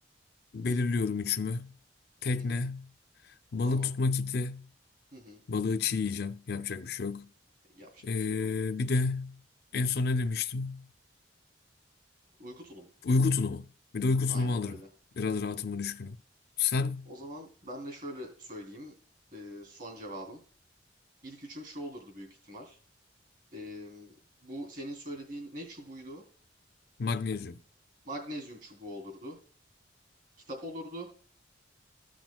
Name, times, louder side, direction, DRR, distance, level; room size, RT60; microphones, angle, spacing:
voice 1, 0.5-1.7 2.2-2.9 3.2-4.7 5.5-7.3 8.0-9.4 9.7-10.9 13.0-13.7 13.9-14.8 15.2-16.2 16.6-17.1 27.0-27.6, left 4 dB, 55° left, 0.4 m, -30 dB
voice 2, 7.7-8.6 12.4-12.9 14.3-14.9 17.1-18.9 19.3-20.4 21.2-22.8 23.5-24.1 24.4-26.2 28.0-29.4 30.5-31.1, equal, 45° right, 3.1 m, -43 dB
15.0 x 6.1 x 2.3 m
head